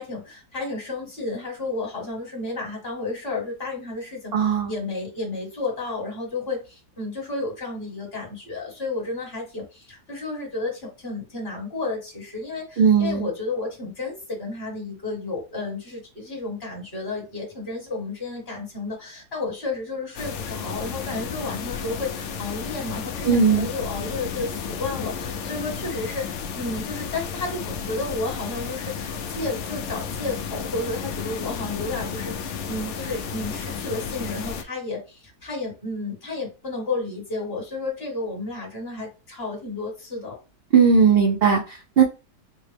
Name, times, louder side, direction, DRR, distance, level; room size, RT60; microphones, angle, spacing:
voice 1, 0.0-40.4, left 3 dB, 40° left, 0 dB, 1.5 m, -32 dB
voice 2, 4.3-4.7 12.8-13.3 23.2-23.7 40.7-42.0, right 6 dB, 75° right, -1 dB, 0.5 m, -18 dB
sound 1, 20.1-34.6, left 6 dB, 85° left, 0.6 m, -32 dB
4.3 x 2.1 x 3.3 m, 0.31 s
omnidirectional pair, 1.8 m